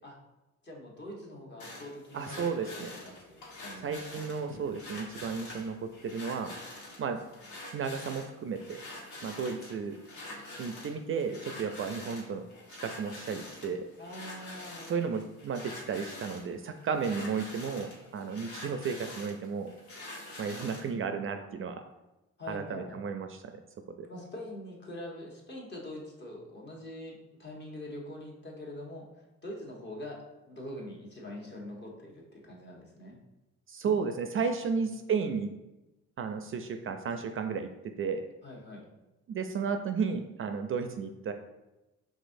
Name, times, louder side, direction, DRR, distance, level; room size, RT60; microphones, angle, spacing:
voice 1, 0.6-4.2 14.0-15.0 22.4-23.0 24.1-29.1 29.4-33.2 38.4-38.9, left 1 dB, 35° left, -2 dB, 1.2 m, -44 dB
sound 1, 1.6-20.9, left 1 dB, 80° left, 1.1 m, -46 dB
voice 2, 2.1-2.9 3.8-6.5 7.0-7.2 7.7-8.8 9.2-10.0 10.6-12.4 12.8-13.8 14.9-19.7 20.4-21.8 22.5-23.5 24.0-24.1 33.7-35.5 36.2-37.7 38.0-38.2 39.3-41.3, right 5 dB, 45° right, 6 dB, 0.4 m, -33 dB
5.0 x 3.6 x 2.6 m, 1.0 s
cardioid pair, 90°, 30 cm